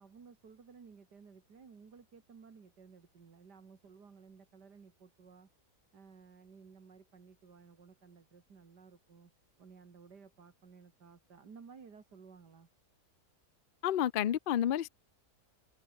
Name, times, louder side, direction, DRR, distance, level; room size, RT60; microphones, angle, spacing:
voice 1, 0.0-5.5 5.9-9.3 9.6-12.7, right 5 dB, 85° right, 3.0 m, -56 dB
voice 2, 13.8-14.9, left 11 dB, 80° left, 0.4 m, -30 dB
omnidirectional pair, 1.7 m